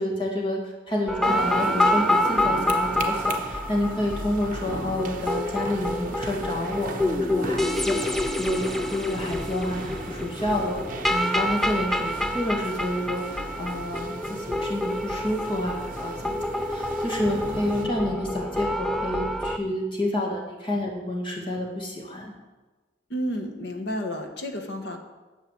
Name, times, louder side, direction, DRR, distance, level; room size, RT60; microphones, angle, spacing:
voice 1, 0.0-8.6 8.9-9.8 10.1-10.8 11.1-22.3, left 1 dB, 25° left, -1 dB, 2.3 m, -29 dB
sound 1, 1.1-19.6, left 1 dB, ahead, 0.4 m, -27 dB
sound 2, 1.2-17.9, right 2 dB, 45° right, 1.0 m, -38 dB
voice 2, 23.1-25.0, equal, 60° left, 5 dB, 1.4 m, -31 dB
9.6 x 7.1 x 8.6 m, 1.2 s
head